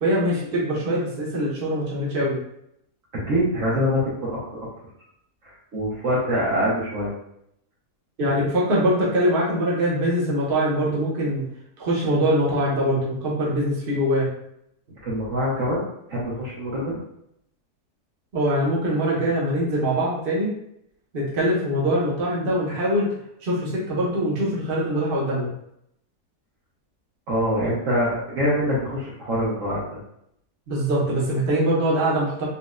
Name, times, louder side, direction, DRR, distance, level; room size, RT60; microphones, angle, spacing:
voice 1, 0.0-2.4 8.2-11.4 11.8-14.3 18.3-20.5 21.1-23.1 23.4-25.5 30.7-32.5, equal, 40° right, -6 dB, 0.9 m, -23 dB
voice 2, 3.1-4.7 5.4-7.1 15.0-15.8 16.1-17.0 27.3-30.0, equal, 55° right, -6 dB, 1.1 m, -24 dB
4.1 x 2.5 x 2.2 m, 0.76 s
omnidirectional pair, 1.7 m